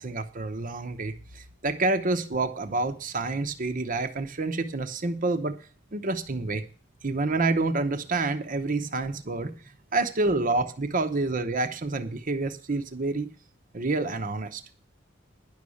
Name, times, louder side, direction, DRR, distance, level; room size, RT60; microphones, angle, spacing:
voice 1, 0.0-5.6 5.9-6.6 7.0-9.5 9.9-13.3 13.7-14.6, right 3 dB, 45° right, 7 dB, 0.8 m, -28 dB
10.5 x 6.4 x 8.4 m, 0.39 s
head